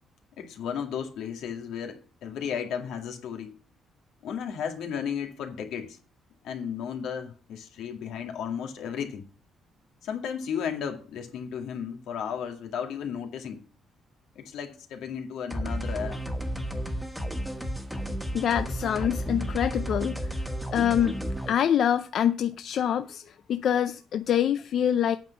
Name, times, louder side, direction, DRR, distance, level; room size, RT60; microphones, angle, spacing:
voice 1, 0.4-3.6 4.2-6.0 6.4-9.2 10.0-13.6 14.4-16.2, left 7 dB, 80° left, 2.1 m, -34 dB
sound 1, 15.5-21.5, equal, ahead, 1.4 m, -32 dB
voice 2, 18.3-20.4 20.7-21.2 21.5-25.2, left 9 dB, 55° left, 0.4 m, -25 dB
9.0 x 6.2 x 7.1 m
cardioid pair, 165°, 0 cm